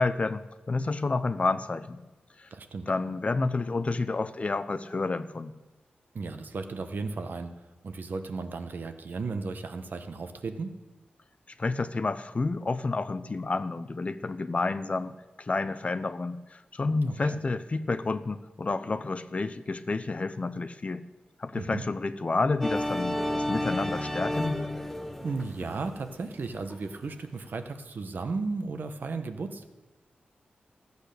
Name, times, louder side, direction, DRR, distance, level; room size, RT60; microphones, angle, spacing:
voice 1, 0.0-2.0 2.4-2.5 2.9-5.6 11.6-21.0 21.4-24.6, left 3 dB, 40° left, 13 dB, 0.6 m, -30 dB
voice 2, 2.5-2.9 6.1-7.5 7.8-10.8 17.0-17.4 21.5-21.8 25.2-29.7, right 4 dB, 65° right, 7 dB, 1.2 m, -35 dB
sound 1, 22.6-27.0, left 1 dB, 5° left, 1.1 m, -32 dB
14.5 x 8.1 x 6.7 m, 1.1 s
wide cardioid pair, 90°, 3 cm